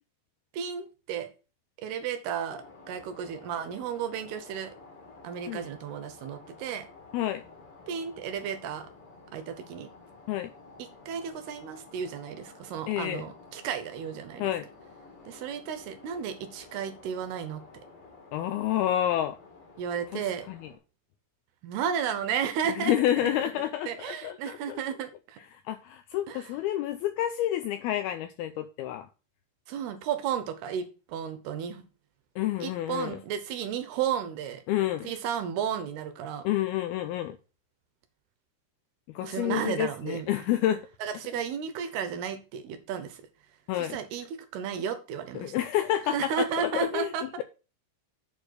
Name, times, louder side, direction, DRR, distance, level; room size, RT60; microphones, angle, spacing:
voice 1, 0.5-1.3 1.8-4.7 5.2-6.9 7.9-8.9 9.3-9.9 11.1-14.5 15.3-17.6 19.8-20.5 21.6-23.3 23.9-25.4 26.3-26.4 29.7-31.8 32.6-34.6 35.0-36.5 39.2-40.3 41.0-43.2 43.8-44.3 44.5-45.5 46.1-47.4, right 8 dB, 75° right, 2.7 m, -33 dB
sound 1, 2.5-20.8, left 3 dB, 45° left, 2.1 m, -52 dB
voice 2, 12.9-13.2 14.4-14.7 18.3-19.4 20.1-20.7 22.7-24.8 25.5-29.1 32.4-33.2 34.7-35.1 36.4-37.4 39.1-40.9 43.7-44.0 45.3-47.4, left 12 dB, 85° left, 2.2 m, -29 dB
7.5 x 4.4 x 6.4 m
omnidirectional pair, 5.0 m